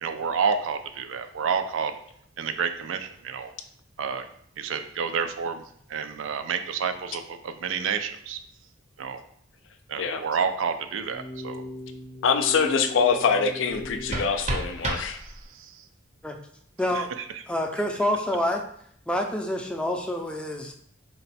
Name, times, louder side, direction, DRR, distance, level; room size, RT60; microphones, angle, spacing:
voice 1, 0.0-1.9 2.4-3.5 4.0-4.3 4.6-5.6 5.9-8.4 9.0-9.2 9.9-11.6 15.2-15.8 16.9-17.0, right 6 dB, 90° right, 8 dB, 0.4 m, -29 dB
sound 1, 11.1-14.3, left 2 dB, 25° left, 0.7 m, -39 dB
voice 2, 12.2-15.2, left 5 dB, 75° left, 7 dB, 0.4 m, -24 dB
sound 2, 13.7-15.7, right 1 dB, 35° right, 0.6 m, -32 dB
voice 3, 16.8-17.1 17.5-18.6 19.1-20.7, left 1 dB, 5° left, 3 dB, 0.4 m, -27 dB
4.0 x 2.2 x 4.1 m, 0.64 s
head